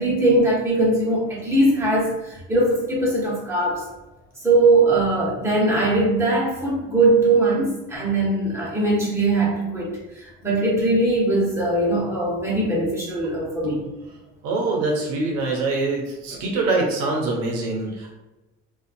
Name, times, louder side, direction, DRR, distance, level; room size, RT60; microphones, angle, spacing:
voice 1, 0.0-3.9 4.4-13.8, right 2 dB, 10° right, -6 dB, 1.1 m, -20 dB
voice 2, 14.4-18.1, right 3 dB, 80° right, -1 dB, 0.7 m, -24 dB
2.5 x 2.4 x 2.6 m, 1.0 s
supercardioid pair, 85°, 34 cm